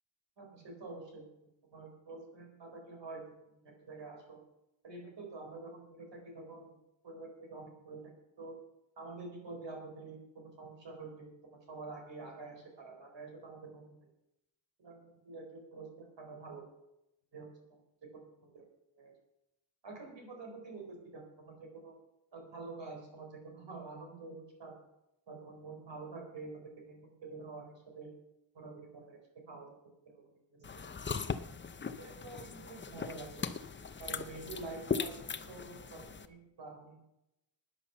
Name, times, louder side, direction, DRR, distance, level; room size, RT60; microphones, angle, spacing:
voice 1, 0.4-1.3 1.7-4.4 4.8-6.8 7.0-8.1 8.4-8.6 9.0-14.1 14.8-16.6 17.3-17.8 18.1-18.7 18.9-19.1 19.8-21.9 22.3-24.8 25.3-28.1 28.5-29.2 29.5-29.8 30.1-31.3 32.0-33.4 34.0-37.0, right 3 dB, 65° right, 2 dB, 4.2 m, -48 dB
sound 1, 30.6-36.3, left 5 dB, 25° left, 0.5 m, -39 dB
12.0 x 9.8 x 6.8 m, 0.85 s
wide cardioid pair, 170°, 48 cm